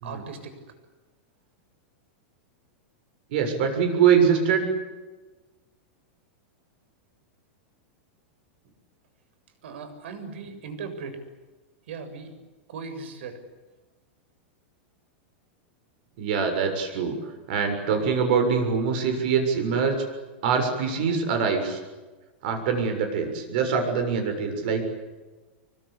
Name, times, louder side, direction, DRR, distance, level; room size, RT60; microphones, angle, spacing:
voice 1, 0.0-0.6 9.6-11.2 11.9-12.3 12.7-13.4, right 5 dB, 70° right, 9 dB, 7.3 m, -38 dB
voice 2, 3.3-4.7 16.2-17.2 17.5-20.0 20.4-21.8 22.4-24.8, right 6 dB, 50° right, 6 dB, 7.0 m, -23 dB
25.5 x 24.5 x 8.6 m, 1.2 s
supercardioid pair, 165°, 6 cm